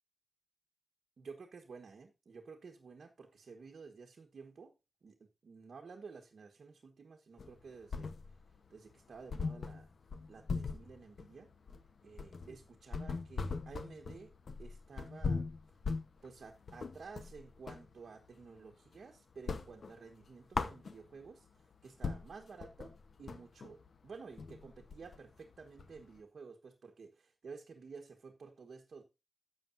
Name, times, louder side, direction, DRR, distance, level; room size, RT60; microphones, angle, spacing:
voice 1, 1.2-4.7 5.0-8.1 8.7-9.9 10.3-11.5 12.0-14.3 14.6-15.5 16.2-22.9 23.2-29.0, right 5 dB, 70° right, 1.3 m, -52 dB
sound 1, 7.4-8.6 8.9-9.0 9.3-17.9 18.3-19.0 19.3-21.3 21.7-21.8 22.0-26.2, left 4 dB, 65° left, 1.0 m, -40 dB
13.0 x 8.3 x 2.6 m
wide cardioid pair, 160°, 0 cm